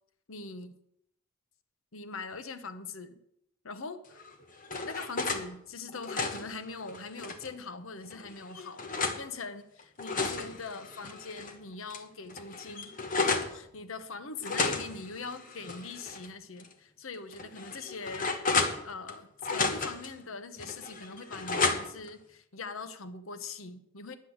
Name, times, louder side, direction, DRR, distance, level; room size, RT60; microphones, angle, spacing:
voice 1, 0.3-0.8 1.9-3.2 3.6-4.2 4.8-24.2, left 4 dB, 70° left, 11 dB, 0.9 m, -42 dB
sound 1, 4.2-5.5 5.9-7.5 8.1-9.2 9.8-11.5 11.9-12.0 12.3-13.5 14.4-16.3 16.6-16.7 17.3-19.1 19.4-20.1 20.6-22.1, left 4 dB, 40° left, 1.2 m, -33 dB
10.5 x 7.9 x 7.9 m, 0.76 s
head